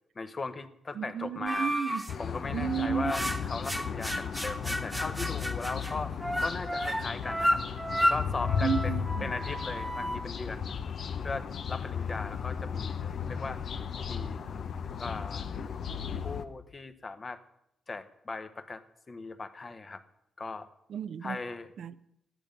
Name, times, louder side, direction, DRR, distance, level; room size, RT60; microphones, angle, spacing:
voice 1, 0.2-1.7 2.2-3.2 3.5-7.6 8.1-8.7 9.2-10.7 11.2-13.6 14.1-14.4 15.0-15.5 16.2-17.4 17.9-20.0 20.4-20.7 21.2-21.7, left 3 dB, 30° left, 1.1 m, -38 dB
voice 2, 0.9-2.0 2.5-3.1 8.6-9.3 20.9-21.4 21.8-22.0, right 7 dB, 65° right, 0.6 m, -32 dB
sound 1, 1.5-2.1 2.7-10.2, equal, 5° right, 1.0 m, -32 dB
sound 2, 2.1-16.5, left 7 dB, 60° left, 0.8 m, -35 dB
14.5 x 11.0 x 5.3 m
cardioid pair, 105°, 0 cm